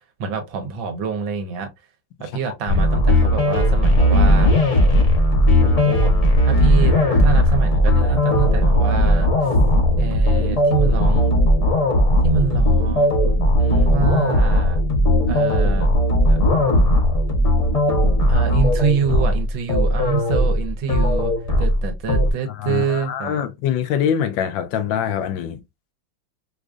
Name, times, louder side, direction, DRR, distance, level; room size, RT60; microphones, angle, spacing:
voice 1, 0.2-1.7 2.2-4.6 5.6-6.1 6.4-6.9 7.2-9.5 10.0-11.3 12.2-13.1 13.6-14.8 15.3-15.9 16.3-16.4 18.3-21.3 21.6-23.4, right 6 dB, 80° right, 1.6 m, -26 dB
voice 2, 2.2-2.5 22.5-25.6, left 9 dB, 80° left, 1.3 m, -24 dB
sound 1, 2.7-22.3, left 1 dB, 35° left, 0.6 m, -17 dB
4.8 x 2.4 x 2.4 m
omnidirectional pair, 2.1 m